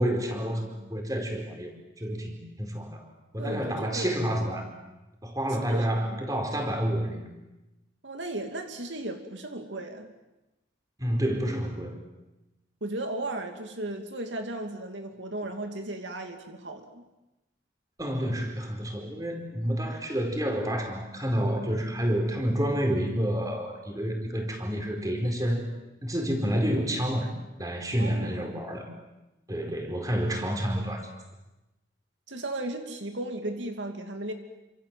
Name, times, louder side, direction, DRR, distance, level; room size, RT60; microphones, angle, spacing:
voice 1, 0.0-3.0 3.3-4.7 5.2-7.2 11.0-12.0 18.0-25.7 26.0-27.3 27.6-28.9 29.5-31.1, equal, 20° right, 4 dB, 4.7 m, -29 dB
voice 2, 3.4-4.3 5.7-6.2 8.0-10.1 12.8-17.1 28.0-28.5 32.3-34.3, right 1 dB, 75° right, 5 dB, 2.6 m, -35 dB
28.5 x 26.5 x 7.7 m, 0.99 s
head